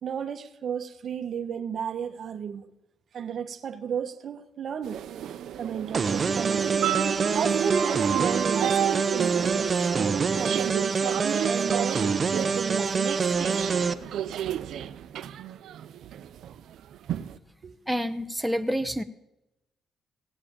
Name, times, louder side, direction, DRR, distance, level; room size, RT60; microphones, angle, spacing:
voice 1, 0.0-2.7 3.1-5.0 5.6-6.7 7.3-11.0 11.5-13.3 17.6-17.7, right 7 dB, 55° right, 1.1 m, -33 dB
sound 1, 4.8-17.4, right 11 dB, 75° right, 0.7 m, -32 dB
sound 2, 5.9-13.9, right 5 dB, 35° right, 0.8 m, -26 dB
voice 2, 17.9-19.0, equal, 5° right, 0.8 m, -28 dB
17.0 x 7.6 x 8.7 m
cardioid pair, 90°, 0 cm